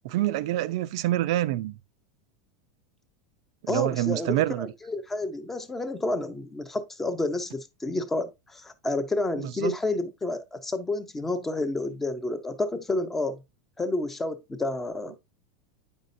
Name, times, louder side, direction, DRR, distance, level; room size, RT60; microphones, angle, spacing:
voice 1, 0.0-1.7 3.6-4.7 9.4-9.8, right 15 dB, 50° right, 0.4 m, -26 dB
voice 2, 3.7-13.4 13.8-15.2, left 2 dB, 5° left, 0.5 m, -30 dB
8.3 x 5.3 x 2.5 m
supercardioid pair, 180°, 4 cm